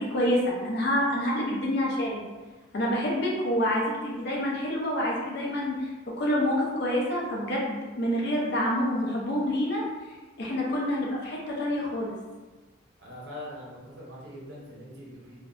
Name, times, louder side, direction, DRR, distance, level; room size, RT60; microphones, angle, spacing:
voice 1, 0.0-2.2 2.7-9.8 10.4-12.1, equal, 55° left, -3 dB, 0.5 m, -27 dB
voice 2, 13.0-15.4, left 1 dB, 55° right, -5 dB, 0.7 m, -42 dB
2.6 x 2.2 x 2.2 m, 1.2 s
head